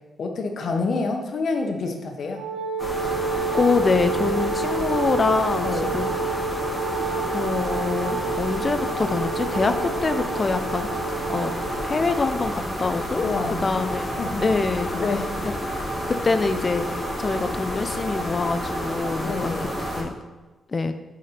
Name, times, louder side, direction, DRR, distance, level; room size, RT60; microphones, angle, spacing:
voice 1, 0.2-2.4 5.6-5.9 13.2-13.6 14.1-14.4 14.9-15.3 19.2-19.7, left 3 dB, 60° left, 3 dB, 0.9 m, -27 dB
Wind instrument woodwind instrument, 2.3-12.3, right 4 dB, 90° right, 0.9 m, -30 dB
sound 1, 2.8-20.0, equal, ahead, 1.7 m, -29 dB
voice 2, 3.5-6.1 7.3-9.8 10.0-10.9 11.3-11.5 11.8-13.3 13.6-14.1 14.4-14.9 15.9-19.6 19.9-20.1 20.7-20.9, left 4 dB, 35° left, 9 dB, 0.5 m, -25 dB
5.0 x 3.9 x 5.8 m, 1.2 s
cardioid pair, 95°, 0 cm